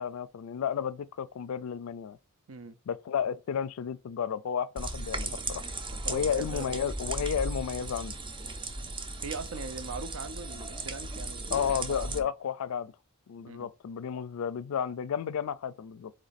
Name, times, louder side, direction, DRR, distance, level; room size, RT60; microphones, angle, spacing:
voice 1, 0.0-2.2 2.9-5.7 6.1-8.1 11.5-12.9 13.3-16.1, left 7 dB, 85° left, 0.4 m, -32 dB
sound 1, 4.8-12.2, right 2 dB, 25° right, 0.5 m, -36 dB
voice 2, 5.9-6.8 9.2-12.3 13.5-13.7, right 4 dB, 75° right, 0.6 m, -41 dB
4.0 x 3.2 x 4.0 m
head